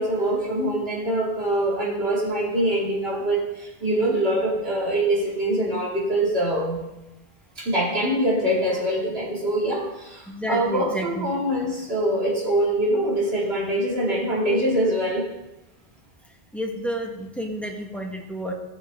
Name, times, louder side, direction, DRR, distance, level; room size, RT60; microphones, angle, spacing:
voice 1, 0.0-6.8 7.6-15.3, right 1 dB, 75° right, -5 dB, 2.9 m, -24 dB
voice 2, 10.3-11.3 16.5-18.5, equal, ahead, 0 dB, 1.5 m, -30 dB
16.0 x 7.3 x 3.8 m, 0.98 s
omnidirectional pair, 1.0 m